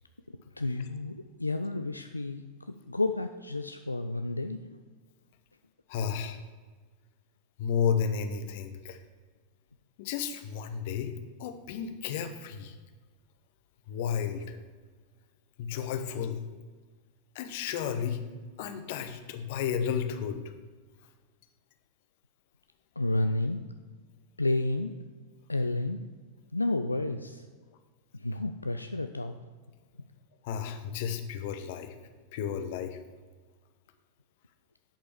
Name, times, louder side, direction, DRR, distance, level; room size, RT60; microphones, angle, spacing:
voice 1, 0.6-4.6 23.0-23.6 24.4-24.9 25.5-26.0 26.5-27.4 28.1-29.4, left 2 dB, 85° left, 8 dB, 0.3 m, -31 dB
voice 2, 5.9-6.4 7.6-9.0 10.0-11.1 11.4-12.8 13.9-14.6 15.6-16.4 17.3-18.2 18.6-20.4 30.4-31.9 32.3-33.0, left 7 dB, 50° left, 9 dB, 0.8 m, -32 dB
7.4 x 5.5 x 6.9 m, 1.4 s
figure-of-eight pair, 90°, 0 cm